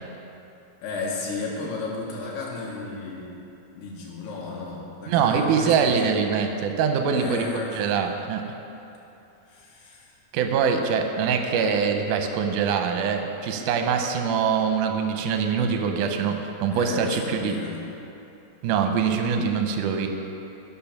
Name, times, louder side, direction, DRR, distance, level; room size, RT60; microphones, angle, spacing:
voice 1, 0.8-3.4 3.8-6.0 7.1-8.0 9.5-10.2 16.7-17.9, left 3 dB, 70° left, -3 dB, 2.9 m, -34 dB
voice 2, 5.1-7.5 7.7-8.4 10.3-17.6 18.6-20.1, right 6 dB, 75° right, 5 dB, 2.1 m, -23 dB
11.0 x 5.4 x 5.9 m, 2.9 s
omnidirectional pair, 4.0 m